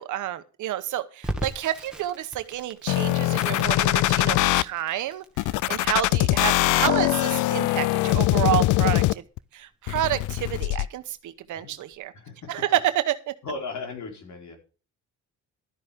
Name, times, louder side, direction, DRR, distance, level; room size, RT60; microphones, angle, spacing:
voice 1, 0.0-5.3 5.7-9.2 9.5-12.1 12.5-13.3, right 13 dB, 80° right, 12 dB, 1.0 m, -29 dB
Crackle, 1.2-12.0, right 1 dB, 5° right, 2.0 m, -41 dB
sound 1, 2.9-4.6 5.4-9.4 9.9-10.9, left 18 dB, 90° left, 0.5 m, -22 dB
voice 2, 12.1-12.5 13.4-14.6, left 4 dB, 70° left, 2 dB, 4.2 m, -36 dB
12.5 x 9.7 x 3.6 m, 0.36 s
cardioid pair, 90°, 30 cm